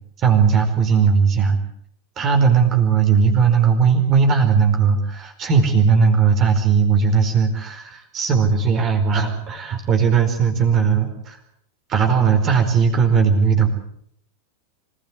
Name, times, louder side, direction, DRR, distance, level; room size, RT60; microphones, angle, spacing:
voice 1, 0.2-1.6 2.2-11.4 11.9-13.7, right 6 dB, 30° right, 5 dB, 4.8 m, -17 dB
26.5 x 17.0 x 8.2 m, 0.69 s
figure-of-eight pair, 90°, 0 cm